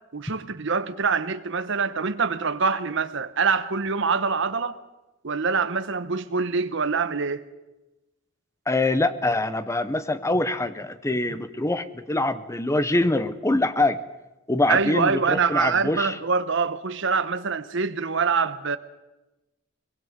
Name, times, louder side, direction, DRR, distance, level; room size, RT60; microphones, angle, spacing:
voice 1, 0.1-4.8 5.2-7.5 14.7-18.8, right 5 dB, 70° right, 0.9 m, -25 dB
voice 2, 8.7-14.0 14.5-16.1, left 2 dB, 15° left, 0.8 m, -24 dB
23.5 x 22.0 x 5.1 m
head